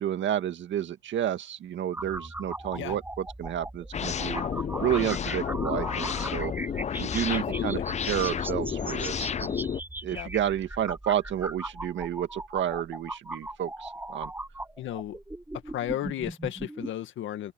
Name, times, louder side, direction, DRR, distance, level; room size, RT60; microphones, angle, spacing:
voice 1, 0.0-4.4 4.8-6.5 7.0-7.8 8.1-9.5 10.0-14.3, right 10 dB, 70° right, 2.0 m, -30 dB
sound 1, 1.9-16.9, right 1 dB, 10° right, 6.9 m, -39 dB
sound 2, 3.9-9.8, left 7 dB, 35° left, 0.5 m, -31 dB
voice 2, 7.3-7.9 10.1-10.3 14.8-15.2 15.7-17.5, left 12 dB, 80° left, 1.9 m, -34 dB
open air
cardioid pair, 90°, 20 cm